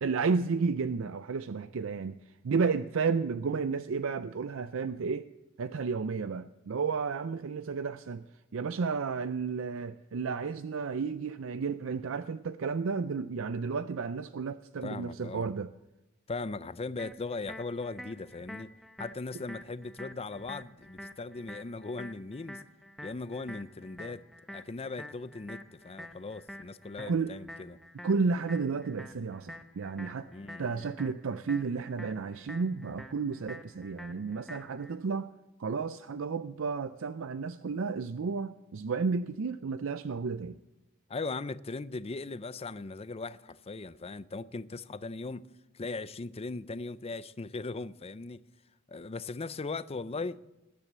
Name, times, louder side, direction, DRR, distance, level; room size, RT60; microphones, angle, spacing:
voice 1, 0.0-2.2 2.4-5.3 5.6-8.2 8.5-15.7 27.1-27.3 28.0-30.3 30.6-35.3 35.6-40.6, right 5 dB, 70° right, 0.5 m, -32 dB
voice 2, 14.8-15.5 16.3-18.7 19.0-22.6 23.0-27.8 30.3-30.8 41.1-45.5 45.7-48.5 48.9-50.4, left 3 dB, 30° left, 0.5 m, -39 dB
sound 1, 17.0-35.0, left 1 dB, ahead, 1.0 m, -48 dB
19.5 x 9.8 x 7.4 m
head